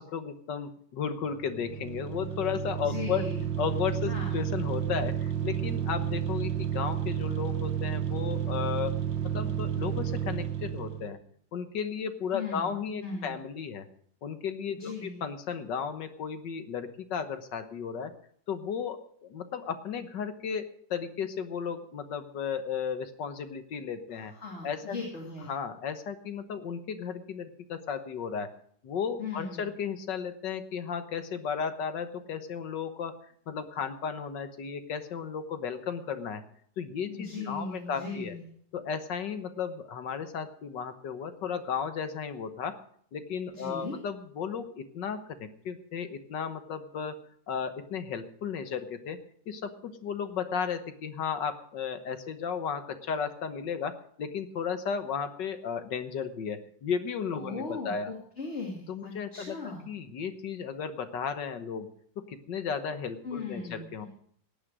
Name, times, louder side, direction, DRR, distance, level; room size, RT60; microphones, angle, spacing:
voice 1, 0.0-3.3 3.6-11.2 11.5-13.9 14.2-18.1 18.5-24.3 24.6-25.0 25.5-28.5 28.8-33.2 33.5-36.4 36.8-38.4 38.7-42.8 43.1-47.2 47.5-49.2 49.5-58.1 58.9-61.9 62.2-64.1, left 7 dB, 75° left, 9 dB, 1.8 m, -34 dB
sound 1, 1.3-11.2, right 10 dB, 85° right, 1.9 m, -31 dB
voice 2, 2.8-3.5 4.1-4.3 12.3-13.4 14.7-15.2 24.1-25.5 29.2-29.7 37.1-38.4 43.5-44.0 57.3-59.8 63.2-64.1, left 3 dB, 35° left, -1 dB, 2.8 m, -38 dB
17.5 x 9.0 x 6.1 m, 0.63 s
omnidirectional pair, 2.0 m